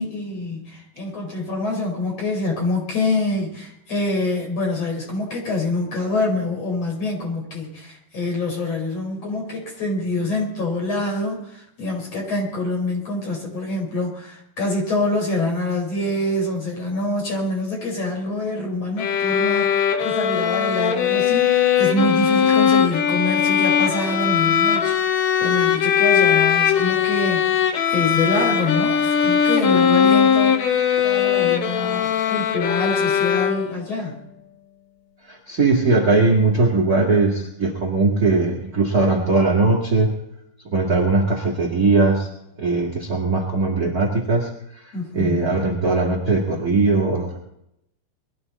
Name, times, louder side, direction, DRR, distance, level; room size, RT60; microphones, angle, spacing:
voice 1, 0.0-30.6 31.0-34.2 44.9-45.6, left 2 dB, 35° left, 0 dB, 5.8 m, -26 dB
sound 1, 19.0-33.9, left 8 dB, 70° left, 1.7 m, -19 dB
voice 2, 35.3-40.1 40.7-42.3 42.6-47.4, right 3 dB, 30° right, 0 dB, 1.8 m, -20 dB
22.5 x 13.5 x 4.2 m, 0.79 s
omnidirectional pair, 4.8 m